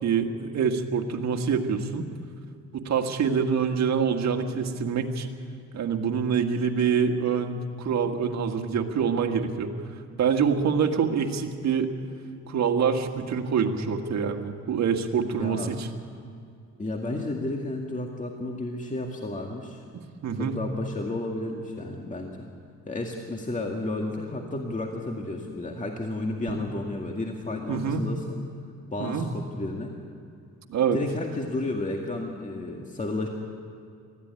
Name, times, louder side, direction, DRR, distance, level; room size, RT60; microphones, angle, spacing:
voice 1, 0.0-2.1 2.7-5.3 5.7-9.7 10.2-11.9 12.5-15.9 20.2-20.5 26.5-26.6 27.7-28.0 29.0-29.3 30.7-31.0, right 6 dB, 65° right, 4 dB, 1.8 m, -25 dB
voice 2, 15.3-15.8 16.8-19.8 20.4-22.5 22.9-28.4 28.9-29.9 30.9-33.3, left 2 dB, 25° left, 1 dB, 2.1 m, -32 dB
20.0 x 14.5 x 9.8 m, 2.4 s
cardioid pair, 90°, 30 cm